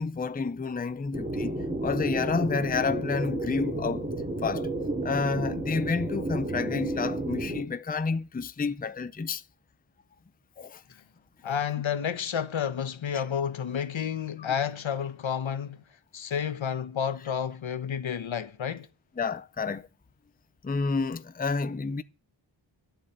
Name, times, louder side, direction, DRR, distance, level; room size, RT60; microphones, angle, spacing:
voice 1, 0.0-4.1 4.4-4.7 5.0-9.4 10.6-10.8 13.1-13.2 19.2-19.9 20.6-22.0, left 4 dB, 20° left, 0.5 m, -30 dB
sound 1, 1.1-7.6, right 1 dB, 15° right, 2.5 m, -31 dB
voice 2, 11.4-15.8 16.1-18.9, left 8 dB, 75° left, 1.1 m, -30 dB
11.0 x 7.3 x 7.9 m
wide cardioid pair, 110°, 48 cm